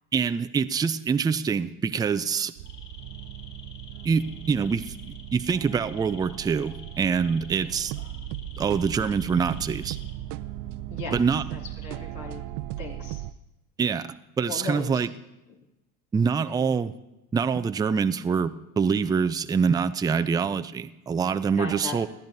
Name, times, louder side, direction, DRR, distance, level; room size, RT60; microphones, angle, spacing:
voice 1, 0.1-2.5 4.0-5.0 5.3-7.9 8.6-10.0 11.1-11.4 13.8-14.1 14.4-15.1 16.1-16.9 17.3-22.1, right 6 dB, 10° right, 11 dB, 0.3 m, -25 dB
sound 1, 2.6-10.5 10.8-11.1, left 5 dB, 35° left, 4.7 m, -49 dB
sound 2, 2.6-13.3, right 14 dB, 55° right, 0.6 m, -37 dB
voice 2, 11.5-12.4 12.8-13.2 14.5-15.0 16.5-16.7 21.6-22.0, left 4 dB, 70° left, -2 dB, 3.0 m, -37 dB
21.0 x 13.5 x 2.7 m, 0.95 s
hypercardioid pair, 80°, 48 cm